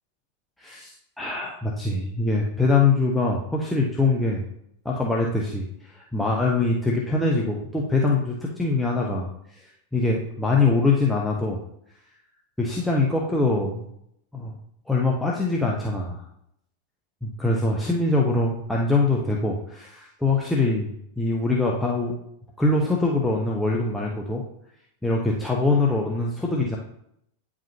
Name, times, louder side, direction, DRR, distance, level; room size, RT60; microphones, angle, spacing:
voice 1, 0.6-4.4 4.8-11.6 12.6-13.9 14.3-14.5 14.9-16.2 17.2-22.1 22.6-24.4 25.0-26.8, left 3 dB, 5° left, -3 dB, 0.8 m, -23 dB
9.0 x 4.9 x 2.8 m, 0.74 s
figure-of-eight pair, 90°, 0 cm